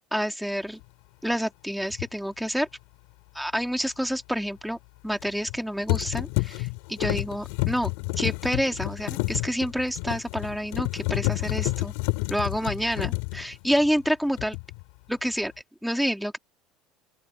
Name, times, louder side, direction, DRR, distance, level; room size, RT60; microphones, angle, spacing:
voice 1, 0.1-0.8 1.2-2.7 3.3-4.8 5.0-11.9 12.3-14.6 15.1-15.5 15.8-16.4, equal, ahead, 2.2 m, -28 dB
sound 1, 1.9-2.1 5.2-5.6 5.9-14.1 14.4-14.8, left 27 dB, 80° left, 4.4 m, -29 dB
open air
cardioid pair, 145°, 0 cm